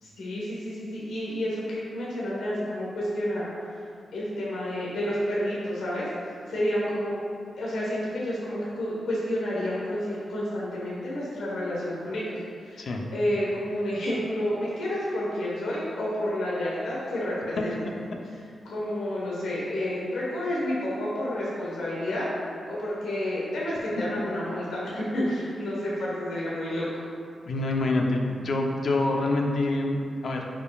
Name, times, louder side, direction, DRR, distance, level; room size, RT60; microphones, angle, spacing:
voice 1, 0.0-3.5 4.1-6.1 6.5-7.2 7.6-17.8 18.6-22.3 22.7-26.9, left 1 dB, 90° left, -6 dB, 1.4 m, -30 dB
voice 2, 27.5-30.4, left 2 dB, 60° left, 1 dB, 0.8 m, -26 dB
10.0 x 5.2 x 2.5 m, 2.3 s
wide cardioid pair, 115°, 0 cm